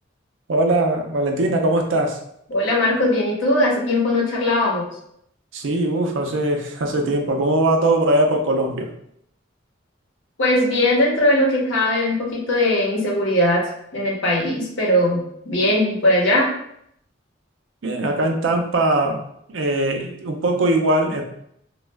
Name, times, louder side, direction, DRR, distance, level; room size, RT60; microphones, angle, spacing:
voice 1, 0.5-2.2 5.5-8.9 17.8-19.2 19.5-21.2, right 1 dB, 80° right, 3 dB, 0.5 m, -20 dB
voice 2, 2.5-4.9 10.4-13.6 13.9-15.2 15.4-16.5, left 1 dB, 90° left, -4 dB, 0.9 m, -19 dB
2.3 x 2.1 x 3.3 m, 0.71 s
head